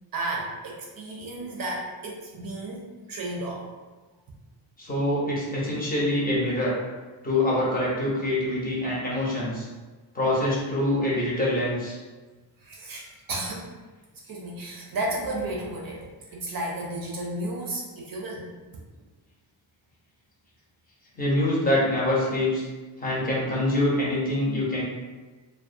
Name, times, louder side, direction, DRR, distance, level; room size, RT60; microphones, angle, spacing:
voice 1, 0.1-3.7 12.6-13.7 14.3-18.5, right 2 dB, 50° right, -2 dB, 0.5 m, -33 dB
voice 2, 4.8-6.7 7.2-9.7 10.1-12.0 21.2-22.6 23.0-24.8, left 1 dB, 20° left, -6 dB, 0.7 m, -25 dB
2.2 x 2.2 x 2.5 m, 1.3 s
cardioid pair, 125°, 47 cm